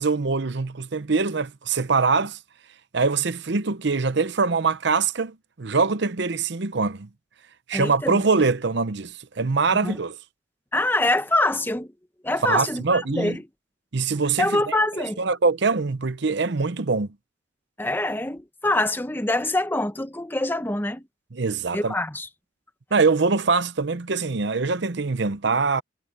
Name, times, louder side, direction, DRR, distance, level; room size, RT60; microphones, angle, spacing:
voice 1, 0.0-2.4 2.9-7.1 7.7-10.2 12.4-13.4 13.9-17.1 21.3-21.9 22.9-25.8, right 4 dB, 60° right, 0.8 m, -23 dB
voice 2, 7.7-8.2 9.8-10.0 10.7-11.9 12.2-13.4 14.4-15.2 17.8-21.0 21.7-22.3, left 2 dB, 10° left, 1.2 m, -25 dB
head